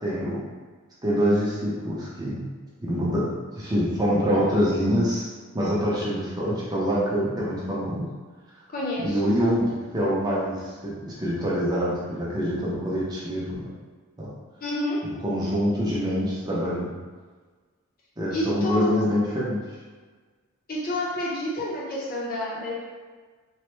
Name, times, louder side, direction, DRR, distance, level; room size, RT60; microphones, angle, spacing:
voice 1, 0.0-0.4 1.0-2.5 2.8-5.3 5.5-8.1 9.0-13.7 14.2-14.3 15.2-17.0 18.2-19.6, equal, 20° right, -7 dB, 0.6 m, -25 dB
voice 2, 8.7-9.3 14.6-15.0 18.3-18.9 20.7-22.8, left 1 dB, 40° left, -5 dB, 0.7 m, -29 dB
3.1 x 2.0 x 3.1 m, 1.4 s
head